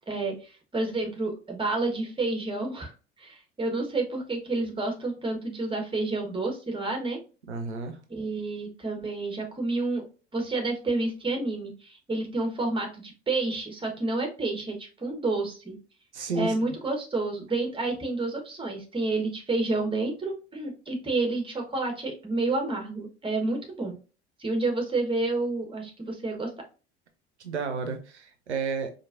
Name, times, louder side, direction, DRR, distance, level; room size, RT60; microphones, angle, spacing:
voice 1, 0.1-7.2 8.1-10.0 10.3-15.8 16.3-23.9 24.4-26.5, right 2 dB, 15° right, 1.2 m, -29 dB
voice 2, 7.5-8.0 16.1-16.8 27.4-28.9, right 4 dB, 85° right, 0.6 m, -32 dB
4.5 x 2.6 x 2.5 m
figure-of-eight pair, 60°, 33 cm